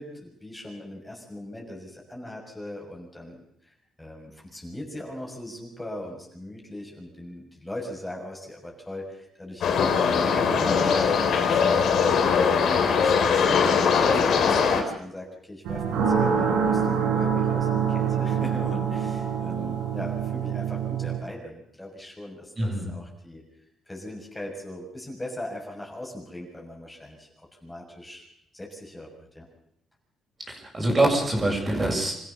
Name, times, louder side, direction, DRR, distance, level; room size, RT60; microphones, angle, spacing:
voice 1, 0.0-3.4 3.6-3.7 4.0-23.4 23.9-28.3 28.5-29.5, left 1 dB, 10° left, -1 dB, 6.5 m, -39 dB
sound 1, 9.6-14.8, left 6 dB, 65° left, 3.5 m, -21 dB
sound 2, 15.6-21.2, right 7 dB, 90° right, 5.3 m, -25 dB
voice 2, 22.6-22.9 30.5-32.1, right 1 dB, 30° right, -1 dB, 7.0 m, -24 dB
26.5 x 15.0 x 7.0 m, 0.74 s
cardioid pair, 90°, 0 cm